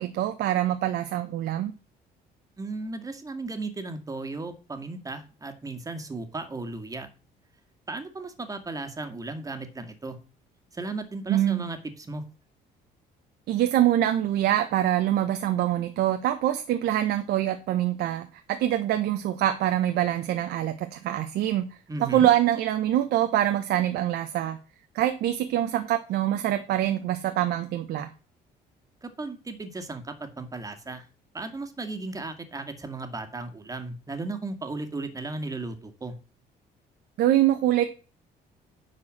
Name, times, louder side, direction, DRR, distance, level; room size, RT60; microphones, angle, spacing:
voice 1, 0.0-1.7 11.3-11.6 13.5-21.6 22.0-24.6 24.9-28.1 37.2-37.8, right 12 dB, 75° right, 8 dB, 1.2 m, -24 dB
voice 2, 2.6-7.1 7.9-10.2 10.7-12.2 21.9-22.3 29.0-31.1 31.3-36.1, right 3 dB, 20° right, 7 dB, 2.1 m, -35 dB
10.5 x 4.9 x 7.6 m, 0.35 s
cardioid pair, 110°, 17 cm